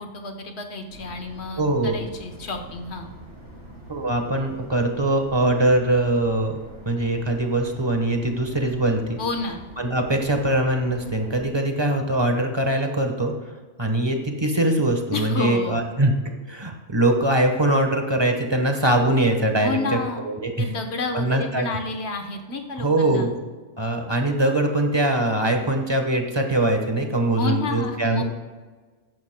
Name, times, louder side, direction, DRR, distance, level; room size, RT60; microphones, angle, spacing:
voice 1, 0.0-3.1 9.2-9.6 15.1-15.8 19.6-20.2 20.6-23.3 27.4-28.2, left 3 dB, 65° left, 5 dB, 1.4 m, -30 dB
sound 1, 0.9-11.5, right 1 dB, 75° right, 3.6 m, -44 dB
voice 2, 1.6-2.0 3.9-6.6 6.8-9.2 9.8-13.3 13.8-16.1 16.5-20.0 20.2-20.7 21.1-21.7 22.8-23.3 23.8-28.2, right 1 dB, 25° right, 4 dB, 1.1 m, -22 dB
14.0 x 11.0 x 2.2 m, 1.3 s
omnidirectional pair, 1.2 m